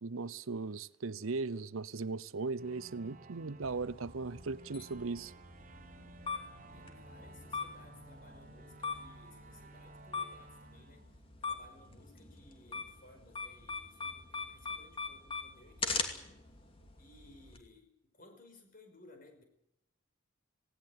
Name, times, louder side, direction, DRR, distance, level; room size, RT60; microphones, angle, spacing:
voice 1, 0.0-5.3, right 4 dB, 85° right, 0.8 m, -38 dB
sound 1, 2.6-11.9, right 2 dB, 40° right, 1.1 m, -55 dB
sound 2, 3.6-17.6, left 4 dB, 25° left, 2.7 m, -42 dB
voice 2, 6.7-16.4 17.0-19.4, left 2 dB, 45° left, 5.6 m, -60 dB
19.0 x 18.0 x 8.8 m
head